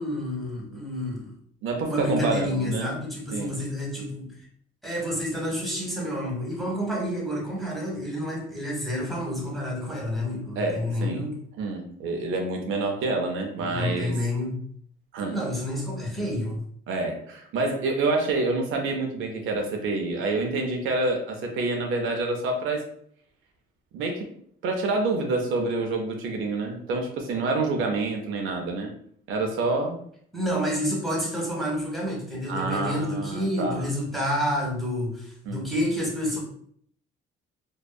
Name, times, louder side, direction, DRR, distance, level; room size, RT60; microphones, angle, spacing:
voice 1, 0.0-1.3 1.9-4.3 4.8-11.4 13.5-14.6 15.2-16.6 30.3-36.4, left 1 dB, ahead, -4 dB, 1.0 m, -29 dB
voice 2, 1.6-3.0 3.3-3.6 10.6-11.2 11.6-14.1 15.1-15.4 16.3-16.4 16.9-22.8 23.9-24.3 24.6-28.9 29.3-30.0 32.5-33.9 35.5-35.6, right 3 dB, 85° right, 2 dB, 0.5 m, -27 dB
2.6 x 2.3 x 2.2 m, 0.63 s
cardioid pair, 90°, 20 cm